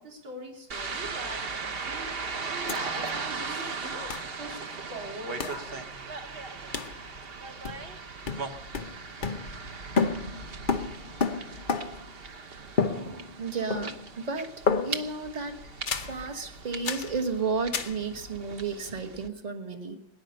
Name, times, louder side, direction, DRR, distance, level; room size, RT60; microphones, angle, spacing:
voice 1, 0.0-6.1, right 1 dB, 75° right, -1 dB, 4.2 m, -42 dB
sound 1, 0.7-19.3, right 4 dB, 40° right, 0.8 m, -38 dB
sound 2, 2.7-2.8 3.1-3.2 4.1-4.3 5.4-5.7 6.7-7.0 7.6-8.0 8.3-9.7 10.0-12.1 12.8-13.4 13.7-14.2 14.7-15.2 15.9-16.2 16.8-17.2 17.7-18.0, left 5 dB, 80° left, 0.4 m, -30 dB
voice 2, 12.9-14.5 14.8-20.0, right 4 dB, 25° right, 5 dB, 1.1 m, -33 dB
18.5 x 10.5 x 6.7 m, 0.81 s
omnidirectional pair, 2.2 m